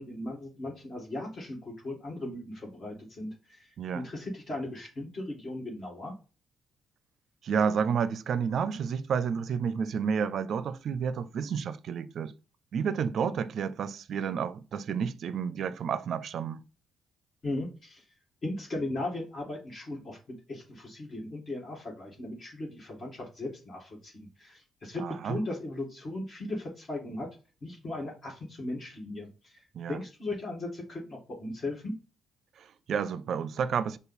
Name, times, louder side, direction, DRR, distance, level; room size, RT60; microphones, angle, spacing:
voice 1, 0.0-6.1 17.4-18.0 18.4-20.2 20.5-27.3 27.6-31.9, left 2 dB, 45° left, 1.8 m, -37 dB
voice 2, 7.4-12.3 12.7-16.6 25.0-25.4 29.7-30.0 32.6-34.0, right 6 dB, 60° right, 0.4 m, -30 dB
5.4 x 2.3 x 4.1 m
cardioid pair, 90°, 0 cm